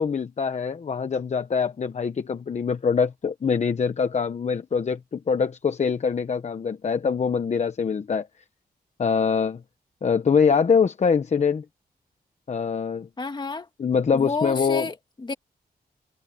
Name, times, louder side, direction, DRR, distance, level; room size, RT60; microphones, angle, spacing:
voice 1, 0.0-8.3 9.0-9.6 10.0-11.6 12.5-13.1 13.8-14.9, left 6 dB, 45° left, 1.0 m, -24 dB
voice 2, 13.2-13.7 14.1-15.3, left 3 dB, 30° left, 2.3 m, -30 dB
wide cardioid pair, 130°, 16 cm